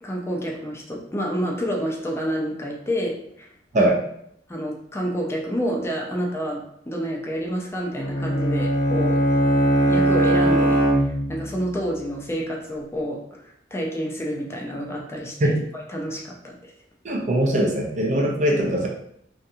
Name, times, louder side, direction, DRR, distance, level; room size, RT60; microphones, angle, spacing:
voice 1, 0.0-3.5 3.7-3.9 4.5-9.2 9.9-16.7, equal, 15° left, -1 dB, 0.5 m, -29 dB
Bowed string instrument, 7.9-11.6, right 1 dB, 70° left, 1.0 m, -20 dB
voice 2, 17.0-18.9, right 1 dB, 40° right, -1 dB, 0.6 m, -21 dB
2.7 x 2.6 x 2.3 m, 0.72 s
head